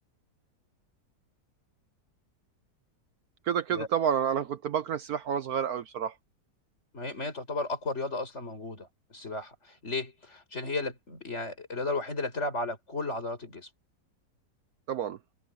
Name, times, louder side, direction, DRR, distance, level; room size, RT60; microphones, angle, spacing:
voice 1, 3.4-6.1 14.9-15.2, right 8 dB, 65° right, 1.2 m, -29 dB
voice 2, 6.9-9.5 9.8-13.7, left 3 dB, 40° left, 5.1 m, -34 dB
omnidirectional pair, 1.9 m